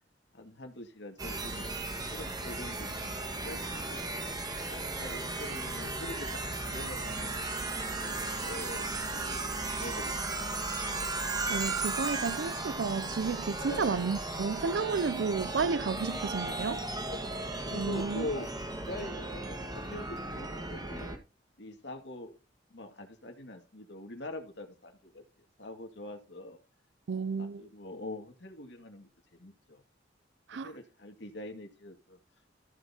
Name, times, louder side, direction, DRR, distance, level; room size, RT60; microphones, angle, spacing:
voice 1, 0.3-1.7 2.1-3.1 3.4-3.6 3.9-4.0 4.7-6.4 6.7-7.4 7.9-9.5 9.8-10.6 13.6-13.8 17.0-17.2 17.6-18.5 18.8-21.1 21.6-22.3 22.7-25.2 25.6-26.6 27.4-29.8 30.6-32.2, left 1 dB, 70° left, 2.2 m, -43 dB
sound 1, 1.2-21.2, right 2 dB, 20° right, 1.7 m, -36 dB
voice 2, 11.5-16.8 17.7-18.3 27.1-27.6 30.5-30.7, right 5 dB, 70° right, 0.5 m, -32 dB
14.0 x 8.0 x 2.9 m
head